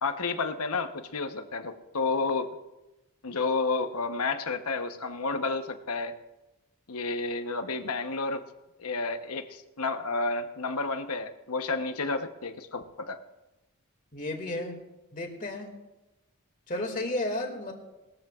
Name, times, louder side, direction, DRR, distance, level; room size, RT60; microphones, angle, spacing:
voice 1, 0.0-2.5 3.2-6.1 6.9-8.4 8.8-13.2, left 3 dB, 80° left, 8 dB, 1.0 m, -31 dB
voice 2, 14.1-14.8 15.1-15.7 16.7-17.7, left 1 dB, 35° left, 3 dB, 2.2 m, -32 dB
21.0 x 14.0 x 2.4 m, 1.0 s
head